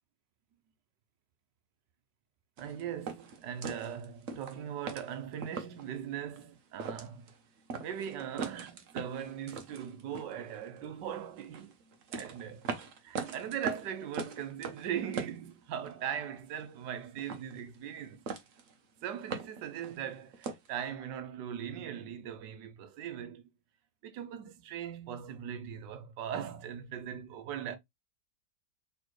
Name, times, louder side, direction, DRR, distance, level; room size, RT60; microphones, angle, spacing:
sound 1, 2.6-5.9 6.4-6.5 6.7-7.4 7.7-10.9 11.4-16.1 16.3-16.9 17.2-18.0 18.3-18.7 19.0-20.7, right 5 dB, 55° right, 1.0 m, -41 dB
voice 1, 2.6-7.3 7.8-11.7 12.1-12.7 13.0-18.4 19.0-23.4 24.0-27.8, right 9 dB, 85° right, 1.3 m, -39 dB
4.2 x 3.5 x 3.0 m
omnidirectional pair, 1.9 m